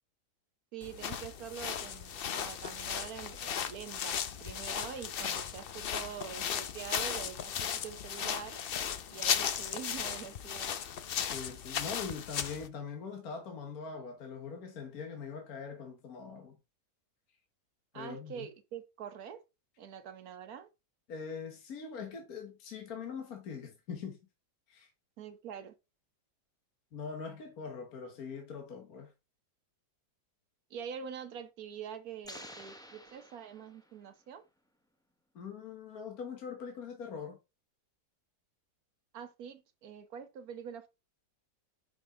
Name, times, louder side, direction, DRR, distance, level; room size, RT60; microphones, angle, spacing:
voice 1, 0.7-8.6 9.1-10.7 17.9-19.4 19.8-20.7 25.2-25.7 30.7-34.4 39.1-40.9, right 8 dB, 65° right, 1.4 m, -45 dB
sound 1, 0.8-12.7, left 8 dB, 85° left, 0.5 m, -36 dB
voice 2, 11.3-16.6 17.9-18.5 21.1-24.2 24.7-24.9 26.9-29.1 35.4-37.4, left 5 dB, 65° left, 1.7 m, -42 dB
sound 2, 32.2-34.1, left 1 dB, 5° left, 0.4 m, -50 dB
6.0 x 5.2 x 3.7 m
omnidirectional pair, 1.7 m